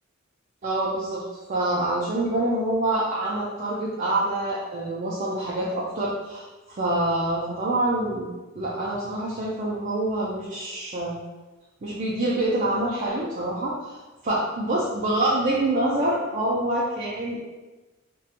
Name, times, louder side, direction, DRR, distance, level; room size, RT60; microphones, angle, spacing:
voice 1, 0.6-1.2 1.5-8.3 8.5-11.2 11.8-14.0 14.2-17.4, right 1 dB, 40° right, -6 dB, 0.4 m, -26 dB
2.9 x 2.2 x 2.8 m, 1.2 s
head